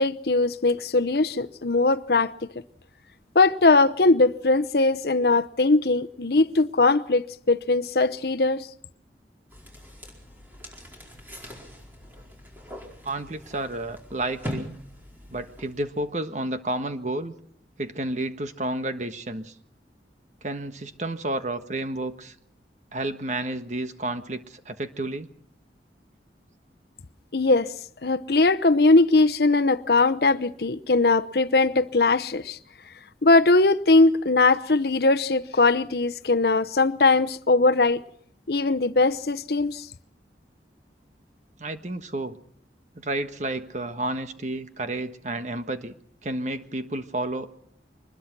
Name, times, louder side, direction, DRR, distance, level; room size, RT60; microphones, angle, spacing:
voice 1, 0.0-2.3 3.3-8.7 27.3-27.7 28.0-32.6 33.2-38.0 38.5-39.9, left 3 dB, 60° left, 0.8 m, -20 dB
sound 1, 9.5-16.1, left 1 dB, 10° right, 4.5 m, -41 dB
voice 2, 13.0-14.7 15.3-17.4 17.8-19.5 20.4-22.3 22.9-25.3 41.6-42.4 42.9-45.9 46.2-47.5, right 1 dB, 40° right, 1.4 m, -31 dB
24.0 x 21.0 x 6.1 m
head